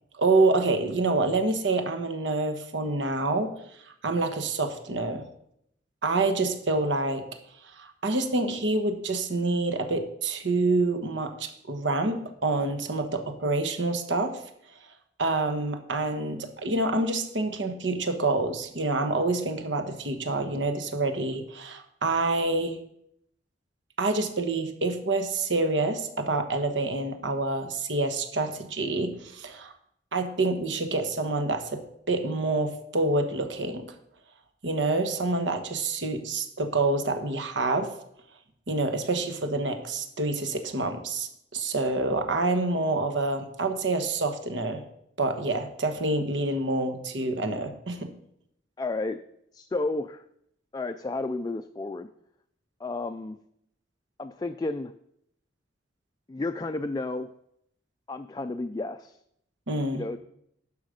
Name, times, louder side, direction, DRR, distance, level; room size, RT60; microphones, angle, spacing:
voice 1, 0.2-3.5 4.0-5.2 6.0-7.2 7.8-14.4 15.2-22.8 24.0-29.7 30.1-31.8 32.1-33.9 34.6-37.9 38.7-44.8 45.2-48.1 59.7-60.0, right 2 dB, 85° right, 7 dB, 1.1 m, -27 dB
voice 2, 48.8-49.2 49.5-50.2 50.7-52.1 52.8-53.4 54.2-54.9 56.3-57.3 58.1-59.2 59.9-60.2, left 2 dB, 20° left, 7 dB, 0.3 m, -32 dB
12.0 x 5.0 x 5.1 m, 0.74 s
head